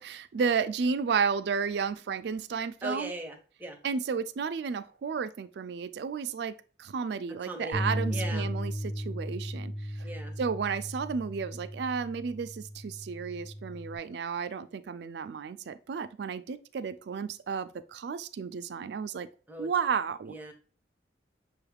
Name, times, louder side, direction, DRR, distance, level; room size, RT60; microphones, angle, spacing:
voice 1, 0.0-3.1 3.8-6.5 6.8-9.7 10.4-19.3 19.6-20.3, right 6 dB, 65° right, 0.3 m, -32 dB
voice 2, 2.8-3.8 7.4-7.8 8.1-8.5 10.0-10.3 19.5-19.7 20.3-20.5, right 1 dB, 10° right, 0.6 m, -39 dB
Bass guitar, 7.7-14.0, equal, 55° left, 0.7 m, -36 dB
6.2 x 2.3 x 3.3 m
head